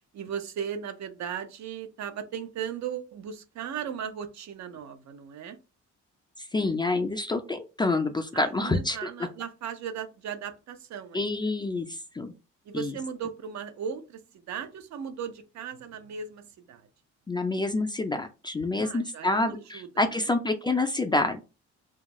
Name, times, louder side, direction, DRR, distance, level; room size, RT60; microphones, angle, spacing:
voice 1, 0.1-5.6 8.3-11.4 12.6-16.9 18.8-20.3, right 8 dB, 65° right, 0.6 m, -37 dB
voice 2, 6.4-9.1 11.1-12.3 12.7-12.9 17.3-21.4, left 2 dB, 15° left, 0.3 m, -27 dB
2.6 x 2.4 x 2.9 m
cardioid pair, 90°, 30 cm